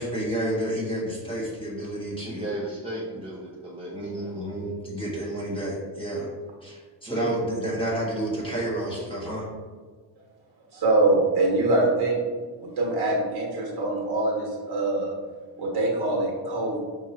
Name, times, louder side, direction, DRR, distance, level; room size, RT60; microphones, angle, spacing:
voice 1, 0.0-2.5 3.9-6.3 6.6-9.5, right 1 dB, 10° left, -5 dB, 1.3 m, -30 dB
voice 2, 2.2-4.5 7.1-7.3, right 1 dB, 15° right, -5 dB, 0.5 m, -35 dB
voice 3, 10.7-15.1 15.6-16.8, right 2 dB, 50° right, -2 dB, 1.4 m, -24 dB
4.6 x 2.4 x 4.3 m, 1.5 s
cardioid pair, 110°, 48 cm